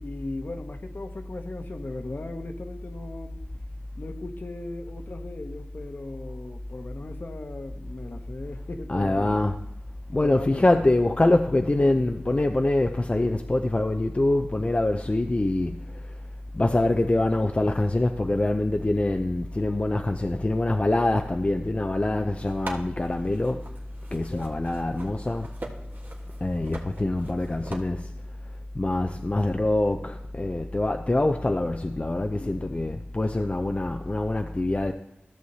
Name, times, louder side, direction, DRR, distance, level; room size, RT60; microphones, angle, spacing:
voice 1, 0.0-3.5 4.0-9.5 10.2-10.7 24.2-24.5 32.4-33.0, left 2 dB, 55° left, 1.0 m, -38 dB
voice 2, 8.9-9.6 10.1-23.7 24.1-25.5 26.4-28.1 28.4-34.9, left 2 dB, 30° left, 0.5 m, -25 dB
sound 1, 22.4-27.8, right 2 dB, 55° right, 1.4 m, -43 dB
13.5 x 6.4 x 2.8 m
cardioid pair, 45°, 4 cm